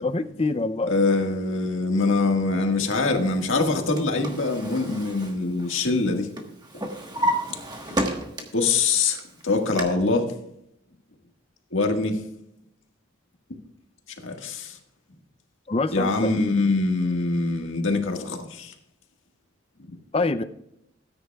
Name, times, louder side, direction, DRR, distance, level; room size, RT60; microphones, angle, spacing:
voice 1, 0.0-0.9 15.7-16.3 20.1-20.4, left 3 dB, 30° left, 11 dB, 0.5 m, -25 dB
voice 2, 0.9-6.3 7.5-7.6 8.5-9.2 9.4-10.3 11.7-12.2 14.2-14.8 15.9-18.7, left 3 dB, 75° left, 3 dB, 1.7 m, -23 dB
Drawer open or close, 3.6-6.1 6.4-8.7 9.1-9.8, right 1 dB, 20° right, 1.3 m, -30 dB
18.5 x 9.7 x 2.3 m, 0.79 s
head